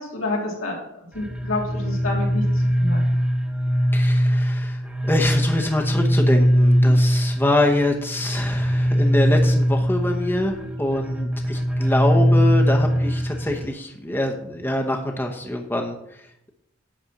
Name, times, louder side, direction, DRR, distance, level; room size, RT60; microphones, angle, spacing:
voice 1, 0.0-3.0 6.8-7.0, left 2 dB, 85° left, -2 dB, 3.5 m, -29 dB
sound 1, 1.2-13.7, equal, 5° right, 1.3 m, -21 dB
voice 2, 3.9-4.8 5.0-16.0, left 1 dB, 10° left, 2 dB, 1.0 m, -24 dB
11.0 x 4.3 x 7.7 m, 0.77 s
head